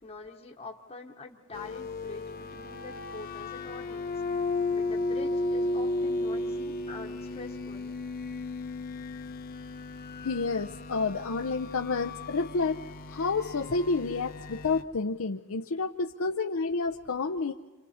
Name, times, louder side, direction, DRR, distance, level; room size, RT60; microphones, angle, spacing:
voice 1, 0.0-4.1 4.7-7.9, left 3 dB, 30° left, -2 dB, 1.2 m, -45 dB
sound 1, 1.5-14.8, left 2 dB, 45° left, 1.0 m, -34 dB
voice 2, 10.2-12.8 13.1-17.5, left 4 dB, 75° left, 3 dB, 0.7 m, -29 dB
29.5 x 27.0 x 4.3 m, 1.2 s
head